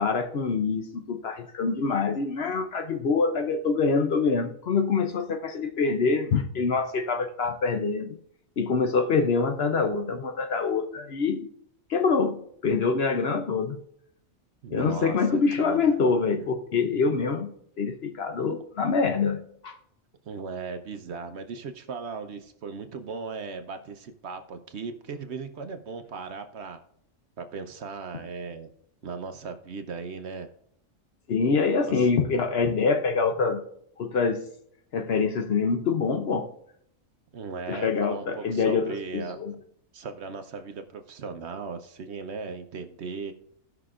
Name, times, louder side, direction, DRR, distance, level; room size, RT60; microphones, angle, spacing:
voice 1, 0.0-8.2 8.6-11.5 11.9-13.8 14.7-19.7 31.3-33.6 34.0-34.4 34.9-36.5 37.7-39.6, left 4 dB, 55° left, 0.9 m, -25 dB
voice 2, 14.6-15.9 16.4-16.5 20.3-26.8 27.4-28.7 29.0-30.5 31.8-32.5 37.3-39.4 39.9-43.3, right 5 dB, 60° right, 1.0 m, -37 dB
16.5 x 5.9 x 2.4 m
omnidirectional pair, 1.4 m